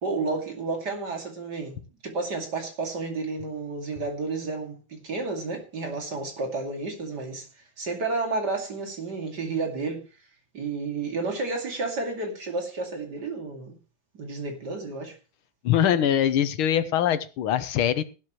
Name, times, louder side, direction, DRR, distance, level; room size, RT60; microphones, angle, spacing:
voice 1, 0.0-1.8 2.0-7.5 7.8-10.0 10.5-13.8 14.1-15.2, right 3 dB, 50° right, 3.1 m, -31 dB
voice 2, 15.6-18.0, left 10 dB, 85° left, 1.8 m, -23 dB
15.5 x 12.0 x 3.1 m
omnidirectional pair, 2.3 m